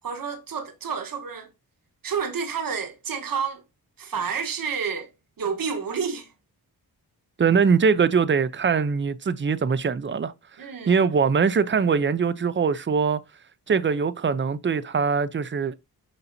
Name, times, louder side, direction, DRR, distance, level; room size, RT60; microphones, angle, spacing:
voice 1, 0.0-1.5 2.0-3.6 4.0-5.1 5.4-6.3 10.6-10.9, right 6 dB, 60° right, 1.3 m, -29 dB
voice 2, 7.4-10.3 10.9-13.2 13.7-15.7, right 5 dB, 30° right, 0.5 m, -22 dB
7.0 x 5.4 x 2.7 m
wide cardioid pair, 90°, 38 cm